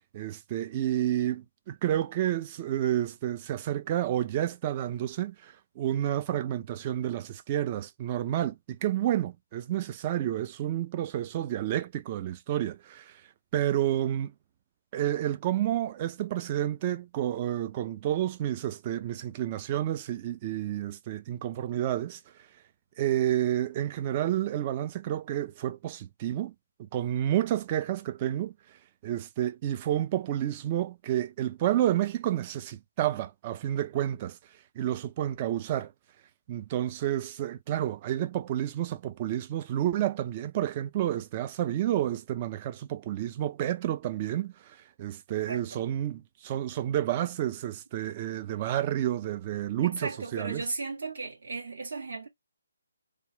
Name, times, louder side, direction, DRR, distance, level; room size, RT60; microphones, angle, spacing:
voice 1, 0.1-13.1 13.5-14.3 14.9-22.2 23.0-26.5 26.9-28.5 29.0-34.4 34.8-35.9 36.5-50.6, right 12 dB, 30° right, 0.5 m, -30 dB
voice 2, 45.5-45.8 49.8-52.3, right 3 dB, 60° right, 1.9 m, -36 dB
3.4 x 2.4 x 4.1 m
figure-of-eight pair, 145°, 0 cm